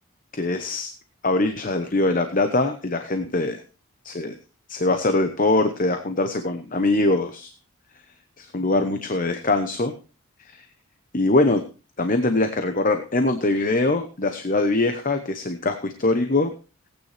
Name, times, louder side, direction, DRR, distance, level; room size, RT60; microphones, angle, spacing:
voice 1, 0.3-0.9 1.2-3.6 4.0-4.3 4.7-7.5 8.4-9.9 10.5-10.6 11.1-11.6 12.0-16.5, left 2 dB, 40° left, 7 dB, 0.9 m, -22 dB
18.0 x 9.3 x 3.3 m, 0.33 s
head